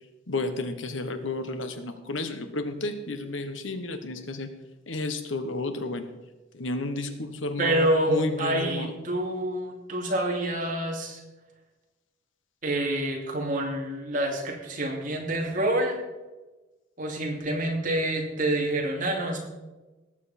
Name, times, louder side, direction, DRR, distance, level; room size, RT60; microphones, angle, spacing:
voice 1, 0.3-4.5 4.9-6.1 6.5-8.9, left 2 dB, 90° left, 8 dB, 1.2 m, -32 dB
voice 2, 7.6-11.2 12.6-16.0 17.0-19.4, right 1 dB, 45° right, 0 dB, 2.6 m, -27 dB
18.5 x 7.6 x 4.3 m, 1.1 s
head